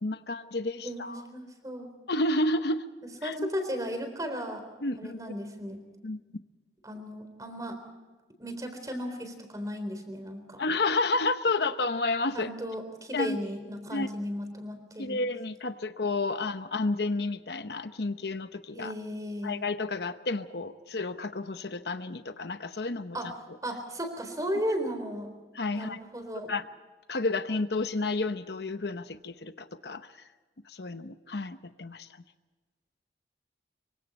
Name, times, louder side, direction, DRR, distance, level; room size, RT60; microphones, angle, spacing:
voice 1, 0.0-1.2 2.1-2.8 3.2-3.5 4.8-5.2 6.0-6.2 10.6-12.5 13.1-13.4 13.9-14.1 15.0-18.9 19.4-23.2 25.5-26.0 26.5-26.6 27.1-30.3 30.7-32.1, left 2 dB, 65° left, 10 dB, 0.9 m, -31 dB
voice 2, 0.8-1.9 3.2-4.6 5.0-5.8 6.8-7.8 8.4-10.6 12.3-15.2 18.7-19.6 23.1-23.3 23.6-25.3 25.7-26.5, equal, 20° right, 7 dB, 3.9 m, -35 dB
26.0 x 24.0 x 4.3 m, 1.3 s
head